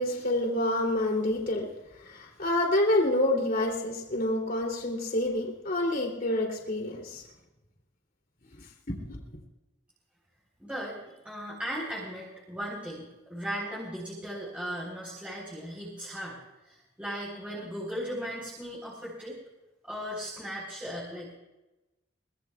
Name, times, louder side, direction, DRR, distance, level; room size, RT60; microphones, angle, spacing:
voice 1, 0.0-1.7 2.0-7.2 8.9-9.2, left 1 dB, 50° left, 1 dB, 3.1 m, -28 dB
voice 2, 10.6-11.0 11.2-16.4 16.6-19.4 19.8-21.3, equal, 5° right, -6 dB, 4.1 m, -37 dB
23.5 x 20.0 x 2.4 m, 1.0 s
head